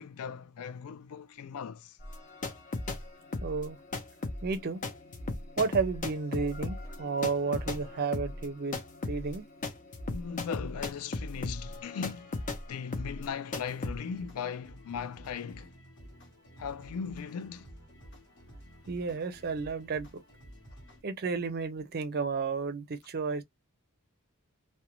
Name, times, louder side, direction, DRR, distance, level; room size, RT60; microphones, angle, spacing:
voice 1, 0.0-2.0 10.1-15.7 16.6-17.7, left 6 dB, 70° left, 0.3 m, -38 dB
sound 1, 2.0-3.0 3.3-12.6 12.9-13.3 13.5-14.0, left 2 dB, 35° left, 0.6 m, -36 dB
voice 2, 3.4-3.8 4.4-4.8 5.6-9.4 18.9-20.2 21.0-23.4, right 4 dB, 45° right, 0.5 m, -32 dB
sound 2, 13.8-21.0, equal, 55° left, 1.0 m, -52 dB
2.4 x 2.1 x 2.9 m
head